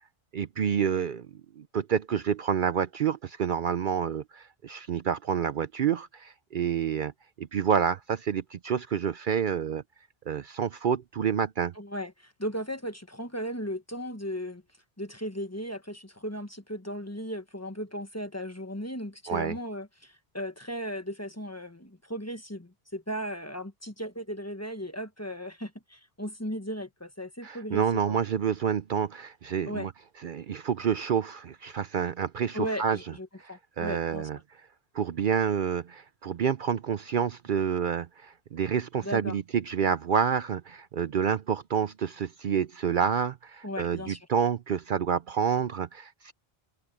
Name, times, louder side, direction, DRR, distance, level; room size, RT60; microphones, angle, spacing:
voice 1, 0.3-1.3 1.6-7.1 7.4-9.8 10.3-11.7 19.3-19.5 27.4-29.9 30.2-33.0 33.8-34.4 34.9-46.3, right 7 dB, 60° right, 0.7 m, -28 dB
voice 2, 11.7-14.6 15.0-28.1 29.7-29.9 32.5-34.3 39.0-39.4 43.6-44.2, equal, 15° left, 1.2 m, -36 dB
open air
omnidirectional pair, 1.1 m